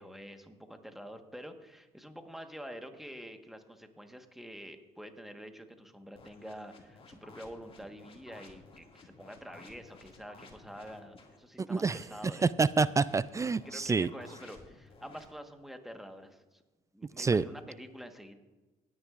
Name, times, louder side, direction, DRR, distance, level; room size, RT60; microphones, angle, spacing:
voice 1, 0.0-12.5 13.6-16.6 16.9-18.3, equal, ahead, 6 dB, 1.4 m, -47 dB
sound 1, 6.1-11.4 12.8-15.3, left 3 dB, 40° left, 2.2 m, -55 dB
voice 2, 11.6-12.0 12.6-14.1 17.2-17.4, right 4 dB, 20° right, 18 dB, 0.3 m, -27 dB
19.0 x 9.8 x 2.5 m, 1.1 s
supercardioid pair, 70°, 15 cm